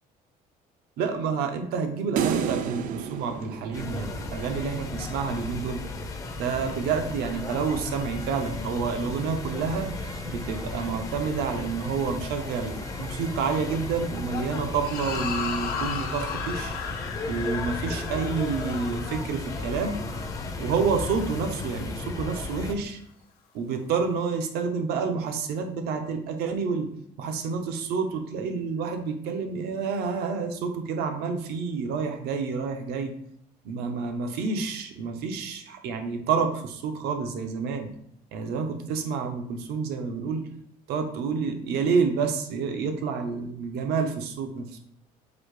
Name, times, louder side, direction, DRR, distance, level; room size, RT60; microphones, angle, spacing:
voice 1, 1.0-5.8 6.4-9.9 10.2-16.7 17.3-20.0 20.6-23.0 23.5-26.9 27.2-33.1 33.6-37.9 38.3-40.4 40.9-44.7, right 5 dB, 80° right, 6 dB, 0.7 m, -29 dB
sound 1, 2.2-4.6, right 8 dB, 55° right, 0.4 m, -30 dB
sound 2, 3.7-22.7, left 3 dB, 20° left, 0.5 m, -35 dB
sound 3, 14.8-21.4, left 6 dB, 65° left, 0.8 m, -36 dB
4.1 x 2.7 x 4.7 m, 0.70 s
cardioid pair, 170°, 16 cm